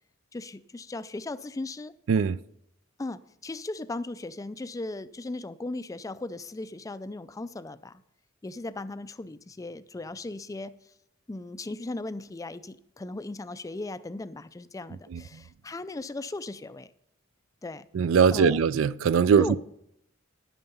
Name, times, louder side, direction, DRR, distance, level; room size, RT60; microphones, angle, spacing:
voice 1, 0.3-1.9 3.0-8.0 8.4-10.7 11.3-16.9 17.6-17.9 18.3-18.6 19.4-19.6, left 2 dB, 15° left, 0.3 m, -37 dB
voice 2, 2.1-2.4 15.1-15.2 17.9-19.6, right 6 dB, 70° right, 0.4 m, -21 dB
10.5 x 9.2 x 5.5 m
head